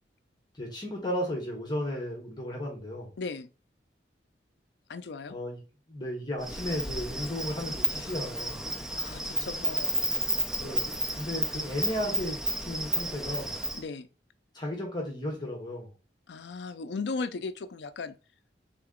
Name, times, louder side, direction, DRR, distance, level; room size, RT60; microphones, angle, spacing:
voice 1, 0.5-3.1 5.3-5.6 5.9-8.6 10.6-13.5 14.5-15.9, left 1 dB, 25° left, 1.1 m, -34 dB
voice 2, 3.2-3.5 4.9-5.4 9.0-10.0 13.7-14.1 16.3-18.2, left 4 dB, 70° left, 0.4 m, -36 dB
Insect, 6.4-13.8, equal, 5° right, 0.5 m, -32 dB
3.8 x 3.0 x 3.6 m
head